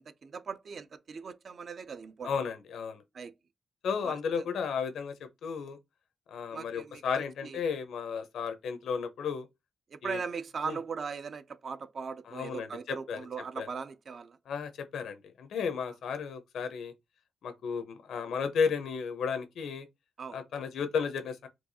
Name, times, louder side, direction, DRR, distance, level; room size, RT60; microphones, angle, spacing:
voice 1, 0.0-2.3 3.1-3.3 4.0-4.5 6.5-7.6 9.9-14.4 20.2-20.4, right 5 dB, 45° right, 0.4 m, -39 dB
voice 2, 2.2-3.0 3.8-5.8 6.3-9.5 10.0-10.2 10.6-10.8 12.3-13.2 13.6-13.7 14.5-16.9 17.4-19.9 20.3-21.5, left 6 dB, 90° left, 0.8 m, -33 dB
4.5 x 2.3 x 2.7 m
wide cardioid pair, 160°, 0 cm